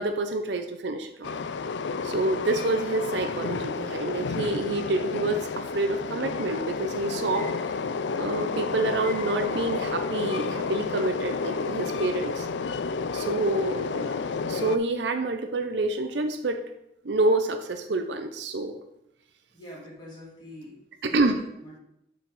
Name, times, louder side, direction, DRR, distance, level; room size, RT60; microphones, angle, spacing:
voice 1, 0.0-1.3 2.0-7.5 8.2-12.5 13.1-16.6 17.0-18.8 21.0-21.4, right 2 dB, 75° right, 7 dB, 0.6 m, -28 dB
Train, 1.2-14.8, left 5 dB, 80° left, 0.4 m, -31 dB
voice 2, 13.6-13.9 19.5-20.8 21.1-21.8, left 1 dB, 25° left, -7 dB, 3.4 m, -44 dB
7.3 x 4.8 x 5.4 m, 0.80 s
head